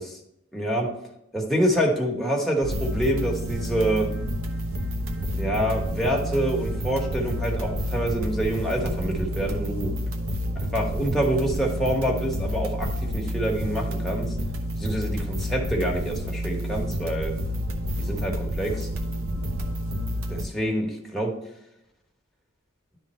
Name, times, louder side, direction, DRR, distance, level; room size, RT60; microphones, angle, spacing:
voice 1, 0.5-0.9 1.3-4.1 5.3-9.9 10.7-14.3 14.8-17.3 18.0-18.9 20.3-21.3, right 1 dB, ahead, -1 dB, 1.2 m, -26 dB
sound 1, 2.6-20.4, equal, 85° right, 0.8 m, -29 dB
10.5 x 3.7 x 4.3 m, 0.84 s
head